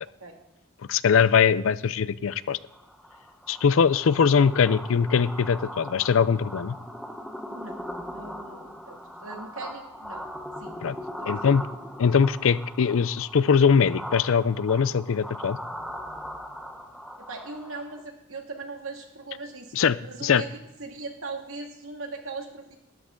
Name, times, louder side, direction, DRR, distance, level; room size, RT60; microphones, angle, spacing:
voice 1, 0.9-2.6 3.5-6.8 10.8-11.0 11.3-11.6 12.0-15.6 19.7-20.4, left 6 dB, 80° left, 17 dB, 0.4 m, -21 dB
sound 1, 2.7-18.0, equal, ahead, 1.0 m, -40 dB
voice 2, 7.5-7.8 8.1-10.3 10.6-10.8 11.2-11.3 17.2-19.7 20.0-22.8, right 3 dB, 85° right, 2 dB, 2.2 m, -39 dB
13.0 x 11.0 x 3.8 m, 0.95 s
head